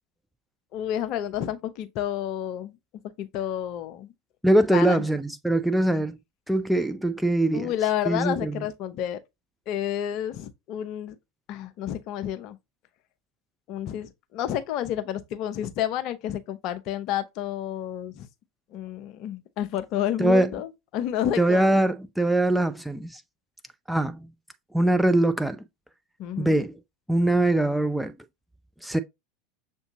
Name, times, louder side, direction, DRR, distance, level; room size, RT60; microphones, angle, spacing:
voice 1, 0.7-2.8 3.2-4.1 4.7-5.0 7.5-9.2 9.7-11.1 11.5-12.6 13.7-18.3 18.7-21.7 26.2-26.6, left 11 dB, 50° left, 0.6 m, -30 dB
voice 2, 4.4-6.2 6.5-7.7 8.1-8.6 20.2-20.5 21.4-23.2 23.9-24.3 24.7-25.6 26.4-26.7 27.1-28.2 28.8-29.0, right 1 dB, ahead, 0.4 m, -22 dB
6.7 x 2.7 x 2.8 m
figure-of-eight pair, 80°, 0 cm